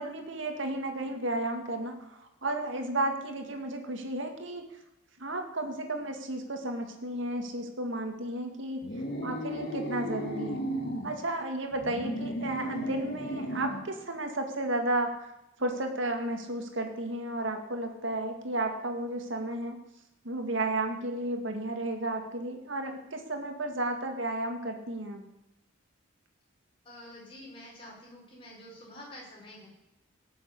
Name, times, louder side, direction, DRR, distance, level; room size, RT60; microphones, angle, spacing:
voice 1, 0.0-4.6 5.2-8.8 9.2-10.6 11.0-15.3 15.6-19.8 20.2-25.2, right 1 dB, 65° right, 5 dB, 2.1 m, -33 dB
sound 1, 8.8-11.1 11.7-13.9, equal, 50° left, 2.1 m, -35 dB
voice 2, 26.8-29.7, left 1 dB, 25° left, -3 dB, 5.0 m, -48 dB
18.0 x 7.1 x 8.3 m, 0.88 s
head